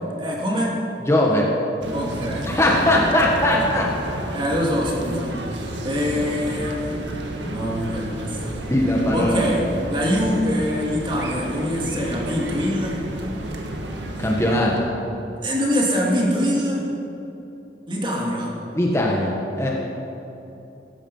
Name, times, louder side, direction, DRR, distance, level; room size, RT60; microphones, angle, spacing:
voice 1, 0.2-0.8 1.9-2.5 4.3-5.4 5.8-6.9 7.5-8.6 9.1-13.0 15.4-16.8 17.9-18.5, equal, 25° right, -2 dB, 2.9 m, -24 dB
voice 2, 1.1-1.5 2.5-3.9 8.7-9.5 14.2-14.9 18.7-19.7, left 1 dB, 15° left, -2 dB, 1.5 m, -20 dB
sound 1, 1.8-14.5, right 1 dB, 85° right, 1.8 m, -31 dB
17.5 x 14.5 x 5.7 m, 3.0 s
head